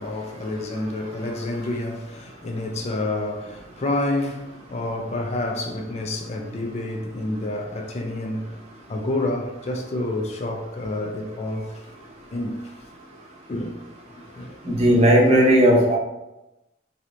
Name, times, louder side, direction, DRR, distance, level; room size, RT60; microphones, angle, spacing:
voice 1, 0.0-8.6 8.9-12.7 13.5-13.8 14.1-15.0, left 2 dB, 35° left, 0.4 m, -29 dB
voice 2, 14.7-16.0, equal, 35° right, 0.8 m, -16 dB
3.1 x 2.8 x 2.5 m
head